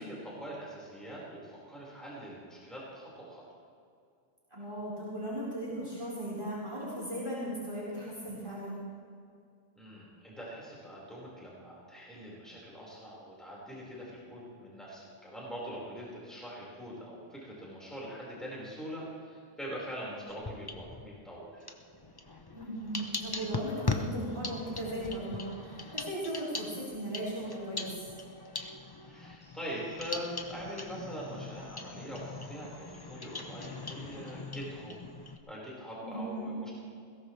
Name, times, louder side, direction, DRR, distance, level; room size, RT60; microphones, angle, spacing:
voice 1, 0.0-3.4 9.7-21.6 29.1-35.0 35.5-36.7, equal, ahead, -6 dB, 4.9 m, -43 dB
voice 2, 4.5-8.8 22.5-28.0 36.0-36.5, right 1 dB, 20° right, -8 dB, 4.6 m, -37 dB
sound 1, 20.3-21.2 21.6-35.4, left 3 dB, 20° left, 0.8 m, -40 dB
21.0 x 17.5 x 3.3 m, 2.3 s
omnidirectional pair, 1.3 m